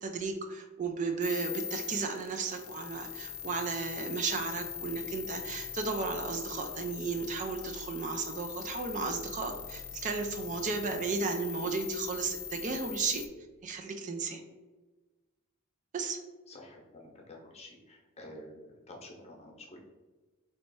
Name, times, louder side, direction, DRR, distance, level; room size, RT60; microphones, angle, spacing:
voice 1, 0.0-13.2 13.6-14.4 15.9-16.2, right 4 dB, 35° right, 5 dB, 0.4 m, -34 dB
sound 1, 1.2-13.3, left 9 dB, 80° left, 0.6 m, -42 dB
voice 2, 16.5-19.8, left 1 dB, 30° left, 0 dB, 0.8 m, -49 dB
3.1 x 3.1 x 4.5 m, 1.2 s
head